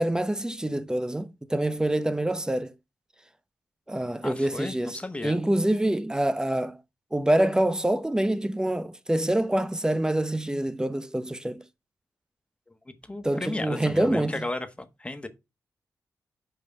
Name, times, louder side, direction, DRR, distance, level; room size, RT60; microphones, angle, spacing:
voice 1, 0.0-2.7 3.9-6.8 7.1-11.6 13.2-14.4, right 1 dB, 10° right, 0.7 m, -26 dB
voice 2, 4.2-5.4 13.1-15.3, left 2 dB, 15° left, 1.2 m, -34 dB
5.6 x 5.4 x 5.3 m
cardioid pair, 75°, 6 cm